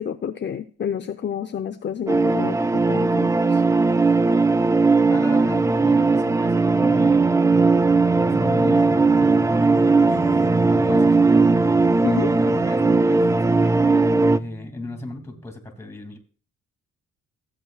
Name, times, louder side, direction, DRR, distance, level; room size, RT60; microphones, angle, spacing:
voice 1, 0.0-3.6 12.0-12.3, left 8 dB, 35° left, 8 dB, 0.6 m, -29 dB
sound 1, 2.1-14.4, right 3 dB, 10° right, 0.4 m, -18 dB
voice 2, 5.1-7.3 8.2-10.4 10.7-11.6 12.3-16.2, left 2 dB, 10° left, 6 dB, 2.6 m, -36 dB
sound 2, 7.0-15.5, right 1 dB, 40° right, 2.6 m, -38 dB
15.5 x 7.9 x 2.4 m, 0.40 s
cardioid pair, 90°, 30 cm